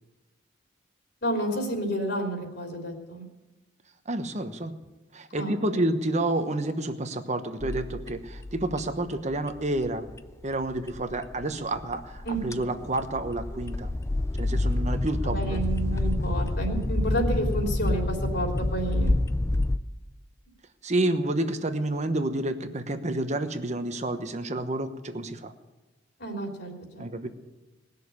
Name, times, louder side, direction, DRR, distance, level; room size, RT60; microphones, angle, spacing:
voice 1, 1.2-3.2 5.3-5.8 12.2-12.6 15.2-19.1 26.2-27.0, right 1 dB, 60° left, 2 dB, 3.2 m, -30 dB
voice 2, 4.0-4.7 5.1-10.1 10.4-13.9 14.3-15.6 20.8-25.5 27.0-27.3, right 1 dB, 35° right, 9 dB, 1.1 m, -29 dB
sound 1, 7.6-19.8, left 2 dB, 15° left, 0.4 m, -28 dB
19.5 x 6.8 x 9.6 m, 1.1 s
head